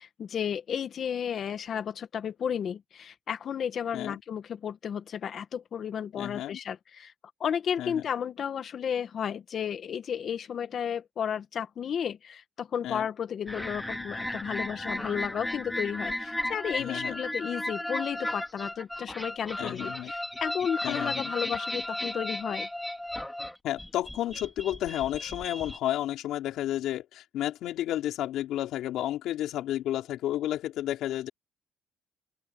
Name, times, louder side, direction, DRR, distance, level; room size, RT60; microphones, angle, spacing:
voice 1, 0.0-7.1 7.4-22.7, left 8 dB, 50° left, 1.7 m, -33 dB
voice 2, 6.1-6.6 7.8-8.0 12.8-13.1 16.7-17.2 19.6-20.1 20.8-21.3 23.6-31.3, left 13 dB, 75° left, 5.1 m, -32 dB
sound 1, 13.5-25.8, left 1 dB, 5° left, 2.7 m, -35 dB
open air
cardioid pair, 105°, 0 cm